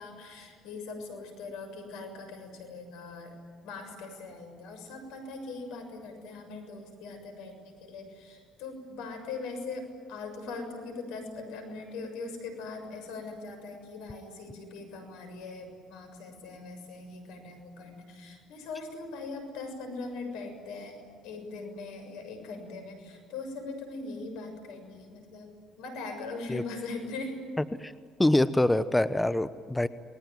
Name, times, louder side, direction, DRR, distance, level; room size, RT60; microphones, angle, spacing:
voice 1, 0.0-3.4 3.6-21.0 21.2-25.5 25.8-27.4, left 3 dB, 75° left, 6 dB, 6.8 m, -41 dB
voice 2, 28.2-29.9, left 1 dB, 10° left, 13 dB, 1.0 m, -24 dB
28.5 x 21.0 x 9.3 m, 2.1 s
hypercardioid pair, 65°, 0 cm